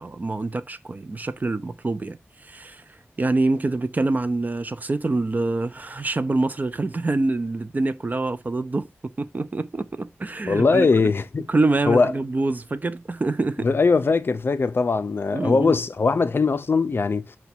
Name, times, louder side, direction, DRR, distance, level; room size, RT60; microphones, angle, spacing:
voice 1, 0.0-8.9 9.2-10.9 11.5-13.7 15.3-15.8, right 2 dB, 35° right, 0.4 m, -26 dB
voice 2, 10.5-11.4 11.9-12.1 13.6-17.2, left 4 dB, 55° left, 0.4 m, -20 dB
5.8 x 2.2 x 4.1 m
wide cardioid pair, 95°, 5 cm